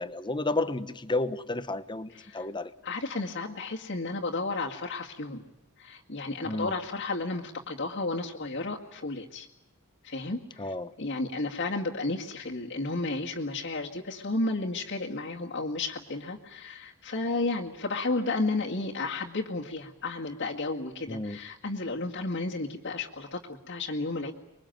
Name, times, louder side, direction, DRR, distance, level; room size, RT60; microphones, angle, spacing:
voice 1, 0.0-2.7 6.4-6.7 10.6-10.9 21.1-21.4, left 2 dB, 20° left, 12 dB, 1.1 m, -31 dB
voice 2, 2.1-2.5 2.8-5.4 5.8-9.5 10.0-24.3, left 2 dB, 55° left, -2 dB, 2.0 m, -32 dB
25.0 x 22.5 x 9.2 m, 0.90 s
head